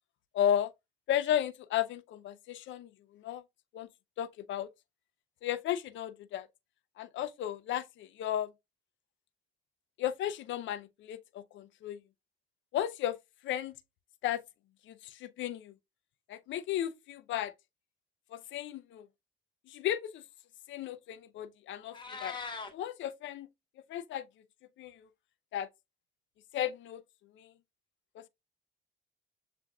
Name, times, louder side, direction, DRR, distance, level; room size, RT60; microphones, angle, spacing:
voice 1, 0.3-0.7 1.1-3.4 3.7-3.9 4.2-4.7 5.4-6.5 7.0-8.5 10.0-12.0 12.7-13.2 13.4-13.7 14.2-14.4 14.9-15.7 16.3-17.5 18.3-19.1 19.7-20.2 20.7-21.9 22.2-22.4 22.7-23.5 23.9-24.3 24.8-25.1 25.5-25.7 26.5-27.0 27.4-27.5 28.2-28.3, left 11 dB, 75° left, 0.5 m, -34 dB
Meow, 21.7-22.7, left 4 dB, 25° left, 1.0 m, -41 dB
6.9 x 2.5 x 2.3 m
cardioid pair, 90°, 20 cm